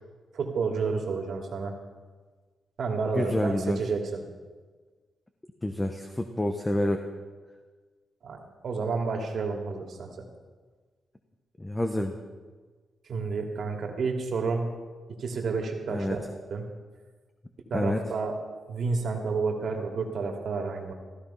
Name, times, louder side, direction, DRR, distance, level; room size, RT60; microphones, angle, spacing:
voice 1, 0.3-1.7 2.8-4.2 8.2-10.2 13.1-14.6 15.2-16.2 16.5-16.6 17.7-18.3 18.7-20.9, right 4 dB, 60° right, 2 dB, 2.6 m, -30 dB
voice 2, 3.1-3.8 5.6-7.0 11.6-12.2 15.9-16.2 17.7-18.0, left 1 dB, 15° left, 5 dB, 1.1 m, -28 dB
15.5 x 13.0 x 5.7 m, 1.4 s
cardioid pair, 95°, 0 cm